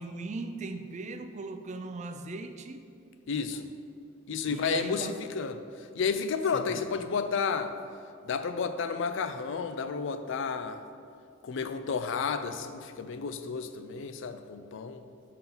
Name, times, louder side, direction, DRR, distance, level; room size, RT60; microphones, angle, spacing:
voice 1, 0.0-2.8 4.5-5.2 6.5-6.8 11.9-12.0, right 3 dB, 35° right, 8 dB, 0.4 m, -38 dB
voice 2, 3.3-3.7 4.3-7.7 8.2-10.8 11.4-15.0, left 5 dB, 65° left, 10 dB, 0.4 m, -32 dB
5.4 x 3.7 x 5.9 m, 2.3 s
head